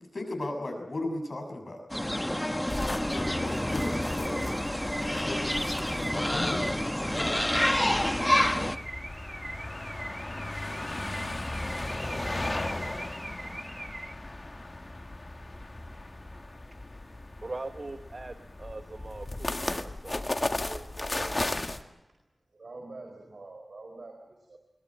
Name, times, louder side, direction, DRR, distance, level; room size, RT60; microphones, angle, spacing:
voice 1, 0.1-1.8 3.1-4.5 5.0-7.3, left 2 dB, 50° left, 4 dB, 7.0 m, -36 dB
sound 1, 1.9-8.8, left 1 dB, 10° left, 1.2 m, -28 dB
sound 2, 2.7-21.8, left 2 dB, 35° left, 1.6 m, -36 dB
Car / Alarm, 3.0-14.1, right 1 dB, 30° right, 1.5 m, -42 dB
voice 2, 16.7-17.1 17.4-21.6, right 2 dB, 45° right, 8 dB, 1.2 m, -42 dB
voice 3, 22.5-24.6, right 2 dB, 75° right, 2 dB, 4.8 m, -45 dB
22.0 x 20.5 x 8.7 m, 0.99 s
wide cardioid pair, 90°, 0 cm